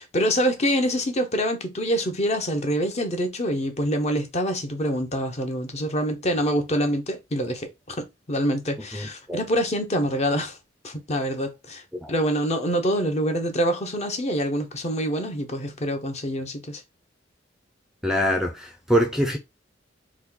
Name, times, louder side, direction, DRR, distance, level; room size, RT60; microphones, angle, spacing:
voice 1, 0.0-10.6 10.8-11.8 12.1-16.8, equal, 35° left, 0.7 m, -26 dB
voice 2, 8.9-9.4 11.9-12.1 18.0-19.4, equal, ahead, 0.4 m, -24 dB
3.0 x 2.3 x 3.7 m
head